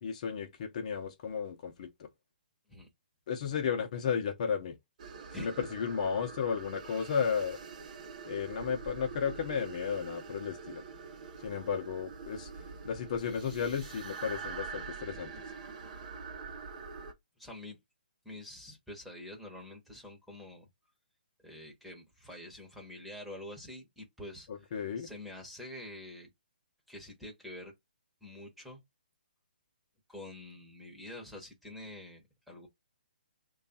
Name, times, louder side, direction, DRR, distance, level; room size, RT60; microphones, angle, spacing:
voice 1, 0.0-1.9 3.3-4.8 5.4-7.6 8.2-10.8 11.4-12.5 12.8-15.3 24.5-25.1, left 6 dB, 45° left, 0.7 m, -33 dB
sound 1, 5.0-17.1, right 5 dB, 50° right, 0.8 m, -45 dB
voice 2, 5.3-5.7 17.4-17.8 18.2-20.7 21.4-26.3 26.9-27.7 28.2-28.8 30.1-32.7, left 1 dB, ahead, 1.0 m, -47 dB
3.1 x 2.4 x 4.1 m
hypercardioid pair, 145°, 5 cm